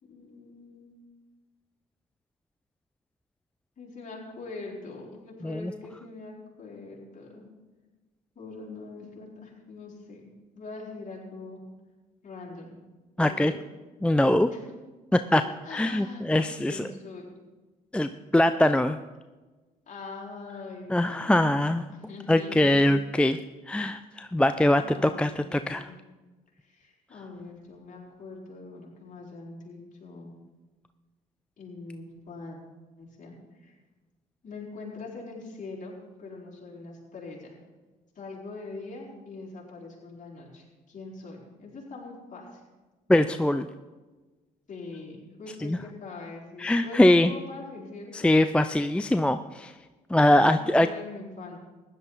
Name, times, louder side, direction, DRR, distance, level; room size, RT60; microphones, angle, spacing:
voice 1, 0.0-1.0 3.8-7.5 8.3-10.3 10.5-11.6 12.2-12.8 13.2-13.6 14.5-14.6 15.3-17.3 19.9-21.6 21.9-22.9 24.8-26.0 26.6-30.3 31.6-32.6 33.0-33.7 34.4-37.5 38.1-42.6 44.7-48.3 50.3-51.6, left 3 dB, 45° left, -3 dB, 4.5 m, -43 dB
voice 2, 13.2-13.5 14.0-14.5 15.1-15.4 15.7-16.8 17.9-19.0 20.9-21.8 22.3-23.4 23.7-25.9 43.1-43.7 45.6-45.8 46.6-47.3 48.1-49.7 50.1-50.9, left 1 dB, 5° left, 10 dB, 0.5 m, -22 dB
15.5 x 11.0 x 4.1 m, 1.2 s
hypercardioid pair, 55°, 19 cm